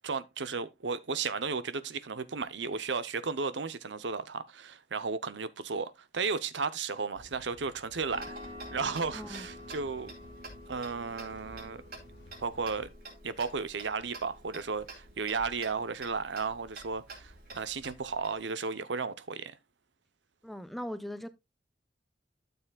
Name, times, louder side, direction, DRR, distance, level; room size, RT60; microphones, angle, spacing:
voice 1, 0.0-8.4 8.7-10.1 10.7-11.8 12.4-12.9 13.2-19.6, right 4 dB, 85° right, 0.8 m, -34 dB
sound 1, 7.1-12.9, equal, 85° left, 1.6 m, -55 dB
Tick-tock, 8.1-18.3, right 1 dB, 55° right, 3.4 m, -47 dB
voice 2, 9.1-9.5 20.4-21.3, equal, ahead, 0.6 m, -39 dB
12.5 x 7.0 x 2.3 m
head